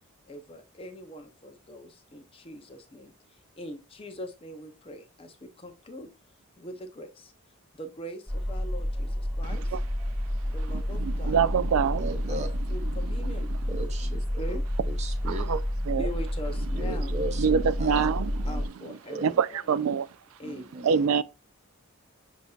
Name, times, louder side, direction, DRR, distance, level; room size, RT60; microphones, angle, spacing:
voice 1, 0.3-3.1 3.6-6.1 6.6-7.3 7.8-9.8 10.4-11.5 12.3-14.6 15.9-17.1 18.4-19.2 19.6-19.7 20.4-21.1, equal, 25° left, 0.6 m, -42 dB
sound 1, 8.3-18.7, equal, ahead, 1.6 m, -30 dB
voice 2, 9.4-9.8 10.7-12.1 13.0-13.8 15.5-15.6 15.9-16.1 17.4-20.1 20.8-21.2, right 6 dB, 75° right, 0.3 m, -26 dB
voice 3, 12.0-12.5 13.4-14.6 14.8-15.5 16.8-18.1 18.5-18.6 19.1-19.4 20.4-20.9, right 2 dB, 30° right, 0.6 m, -37 dB
7.0 x 2.7 x 2.3 m
head